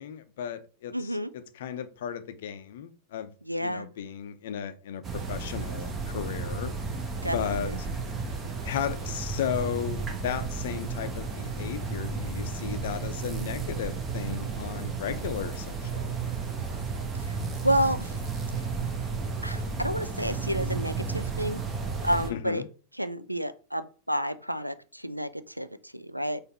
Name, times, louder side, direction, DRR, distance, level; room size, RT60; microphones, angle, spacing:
voice 1, 0.0-3.3 3.6-6.7 7.3-7.9 8.6-16.3 22.3-22.7, left 9 dB, 55° left, 0.5 m, -35 dB
voice 2, 0.9-1.3 3.4-3.9 7.2-7.8 17.1-17.4 17.6-18.2 19.4-21.6 22.0-22.6 23.0-26.4, equal, 90° right, 0.3 m, -30 dB
sound 1, 5.0-22.3, right 4 dB, 25° right, 0.9 m, -33 dB
4.2 x 2.6 x 4.1 m
figure-of-eight pair, 90°, 0 cm